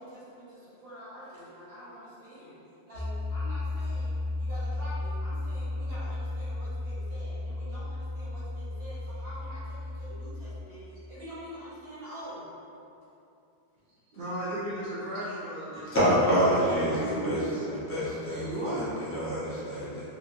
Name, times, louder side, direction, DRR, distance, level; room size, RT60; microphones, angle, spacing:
voice 1, 0.0-2.6 2.9-12.5 16.2-17.6, equal, 80° right, -12 dB, 1.3 m, -45 dB
Piano, 2.9-10.6, left 2 dB, 65° left, 0.9 m, -34 dB
voice 2, 14.1-16.0 16.6-17.6 18.3-18.9, right 1 dB, 60° right, -12 dB, 0.7 m, -35 dB
voice 3, 15.7-17.4 17.9-20.0, equal, 15° left, -11 dB, 0.7 m, -27 dB
2.8 x 2.7 x 2.5 m, 2.7 s
omnidirectional pair, 1.0 m